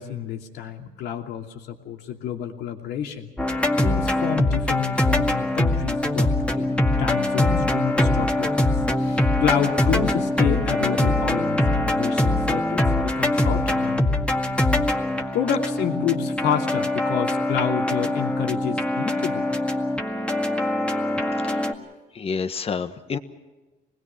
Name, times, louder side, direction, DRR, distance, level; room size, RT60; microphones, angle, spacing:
voice 1, 0.0-3.3 3.8-8.7 9.0-14.0 15.3-19.6, left 8 dB, 85° left, 3 dB, 2.8 m, -29 dB
sound 1, 3.4-21.7, left 1 dB, 5° left, 2.0 m, -23 dB
voice 2, 22.1-23.2, left 5 dB, 35° left, 9 dB, 1.4 m, -29 dB
26.0 x 20.5 x 6.0 m, 1.2 s
cardioid pair, 110°, 17 cm